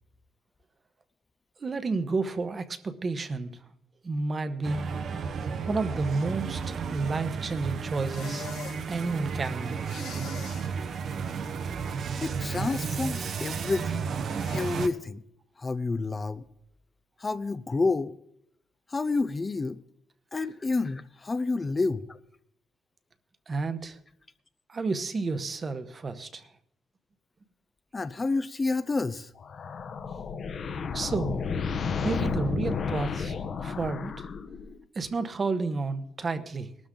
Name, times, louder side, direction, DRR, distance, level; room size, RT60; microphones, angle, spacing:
voice 1, 1.6-3.6 4.0-4.9 5.7-8.5 8.9-10.1 23.5-24.0 24.7-26.5 30.9-31.5 32.0-33.3 33.6-34.3 34.9-36.7, right 3 dB, 30° right, 1.1 m, -31 dB
sound 1, 4.6-14.9, right 6 dB, 50° right, 0.9 m, -33 dB
sound 2, 8.0-8.8 9.8-10.7 12.4-13.0 14.4-14.9, left 7 dB, 85° left, 3.2 m, -43 dB
voice 2, 12.2-14.1 14.5-15.2 15.6-16.4 17.2-18.2 18.9-19.8 20.3-22.2 27.9-29.3, left 3 dB, 20° left, 0.5 m, -29 dB
sound 3, 29.4-34.8, left 5 dB, 45° left, 1.0 m, -32 dB
20.0 x 12.5 x 3.8 m
cardioid pair, 135°, 0 cm